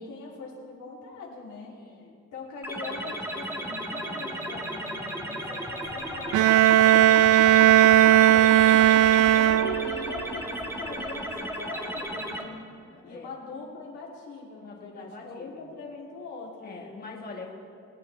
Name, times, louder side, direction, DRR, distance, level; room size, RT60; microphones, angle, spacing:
voice 1, 0.0-1.7 2.3-8.8 9.3-12.5 13.0-17.5, left 3 dB, 85° left, -4 dB, 3.1 m, -41 dB
voice 2, 1.7-2.2 8.6-10.1 12.8-13.3 14.6-15.6 16.6-17.5, left 3 dB, 30° left, 0 dB, 1.7 m, -45 dB
sound 1, 2.6-12.4, equal, 10° right, 1.6 m, -35 dB
Bowed string instrument, 6.3-10.1, right 13 dB, 75° right, 0.4 m, -17 dB
23.5 x 9.0 x 3.3 m, 2.3 s
cardioid pair, 90°, 30 cm